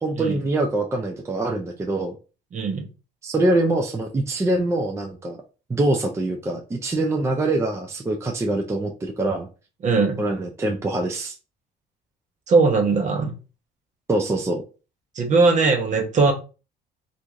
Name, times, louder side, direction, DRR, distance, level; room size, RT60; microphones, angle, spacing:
voice 1, 0.0-2.2 3.2-5.4 5.7-9.5 10.2-11.3 14.1-14.6, right 2 dB, 15° right, 2 dB, 0.4 m, -24 dB
voice 2, 2.5-2.8 9.8-10.2 12.5-13.3 15.2-16.3, right 4 dB, 45° right, 4 dB, 0.9 m, -19 dB
3.0 x 2.6 x 3.6 m, 0.33 s
cardioid pair, 110°, 17 cm